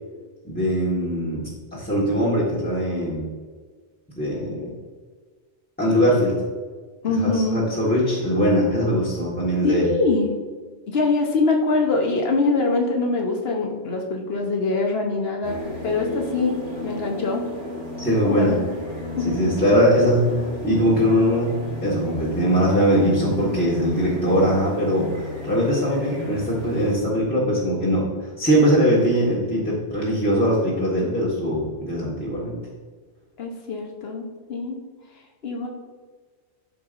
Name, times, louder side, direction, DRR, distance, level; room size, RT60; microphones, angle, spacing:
voice 1, 0.4-3.3 4.2-4.7 5.8-6.3 7.2-9.9 18.0-18.6 19.2-20.2 20.6-21.5 21.8-32.6, equal, 10° left, -9 dB, 1.6 m, -21 dB
voice 2, 7.0-7.6 9.6-10.4 10.9-17.5 18.2-18.6 19.2-19.4 19.7-19.8 33.4-34.8 35.4-35.7, left 3 dB, 60° left, 1 dB, 1.3 m, -23 dB
sound 1, 15.4-26.9, equal, 35° right, 1.9 m, -33 dB
12.0 x 4.7 x 2.6 m, 1.5 s
omnidirectional pair, 1.2 m